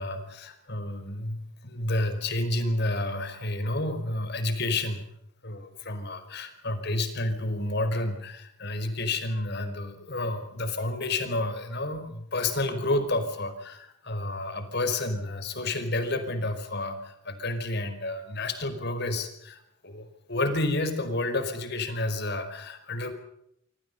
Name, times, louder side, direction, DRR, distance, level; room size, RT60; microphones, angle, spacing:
voice 1, 0.0-5.0 5.4-23.1, left 2 dB, 55° left, 9 dB, 5.0 m, -30 dB
26.0 x 26.0 x 5.5 m, 0.76 s
head